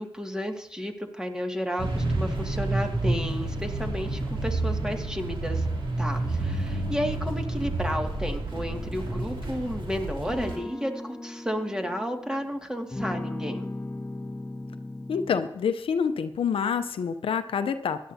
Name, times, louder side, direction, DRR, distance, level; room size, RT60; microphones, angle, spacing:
voice 1, 0.0-5.7 6.0-13.7, equal, 5° right, 3 dB, 2.1 m, -32 dB
sound 1, 1.8-10.6, right 2 dB, 65° right, 3.0 m, -29 dB
sound 2, 8.5-9.6 10.2-12.5 12.9-15.5, left 2 dB, 15° left, 1.3 m, -37 dB
voice 2, 15.1-18.0, left 6 dB, 75° left, 10 dB, 0.7 m, -27 dB
16.5 x 11.5 x 2.8 m, 0.79 s
cardioid pair, 45°, 9 cm